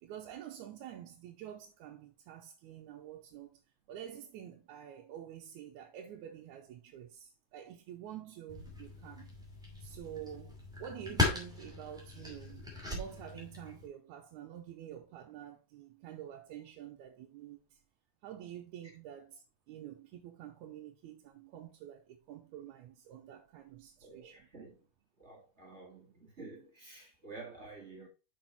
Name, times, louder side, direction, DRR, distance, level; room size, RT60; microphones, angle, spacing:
voice 1, 0.0-3.6 3.9-9.3 9.8-17.8 18.2-24.5, right 10 dB, 75° right, 2.0 m, -48 dB
sound 1, 8.5-13.9, left 3 dB, ahead, 1.8 m, -38 dB
voice 2, 24.0-24.8 25.2-28.1, right 3 dB, 30° right, 1.5 m, -50 dB
6.4 x 6.0 x 4.2 m
omnidirectional pair, 3.6 m